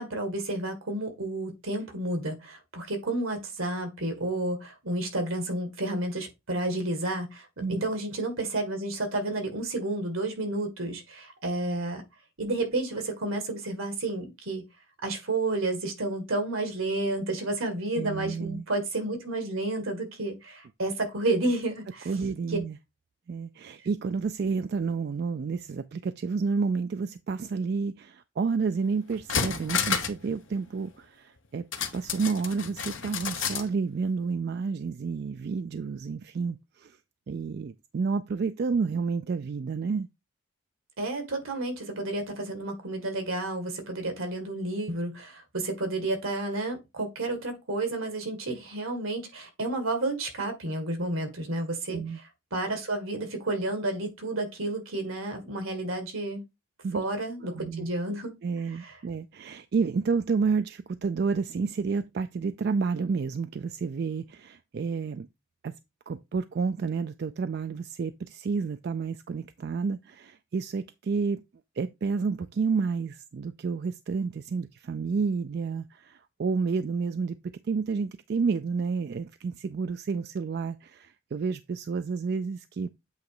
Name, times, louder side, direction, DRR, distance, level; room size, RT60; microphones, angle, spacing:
voice 1, 0.0-12.0 12.4-14.6 15.0-22.1 22.5-22.6 41.0-52.0 52.5-56.4 56.9-58.3 58.8-58.9, right 2 dB, 80° right, 1.9 m, -31 dB
voice 2, 17.9-18.6 22.1-22.8 23.3-31.6 31.9-37.0 37.3-40.1 51.9-52.2 56.8-57.0 57.4-57.9 58.4-65.3 65.6-65.7 66.1-71.4 71.8-77.4 77.7-82.9, right 5 dB, 50° right, 0.3 m, -30 dB
sound 1, 28.7-28.8 29.1-30.2 30.5-30.6 31.7-33.7 34.0-34.1, left 6 dB, 70° left, 0.9 m, -30 dB
8.1 x 3.0 x 4.8 m
head